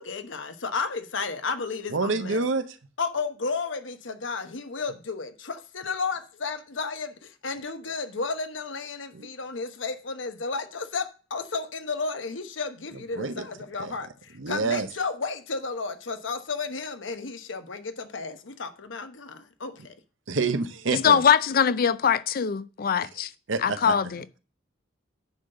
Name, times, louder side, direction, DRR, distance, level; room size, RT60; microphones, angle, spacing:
voice 1, 0.0-2.4 3.0-20.0, left 4 dB, 75° left, 1.0 m, -33 dB
voice 2, 1.9-2.6 9.1-9.3 13.2-13.5 13.8-14.0 14.4-14.9 20.3-21.2 23.0-23.1 23.5-23.9, right 4 dB, 80° right, 0.8 m, -27 dB
voice 3, 20.9-23.3 23.6-24.2, left 7 dB, 50° left, 0.5 m, -22 dB
9.4 x 4.0 x 6.6 m
head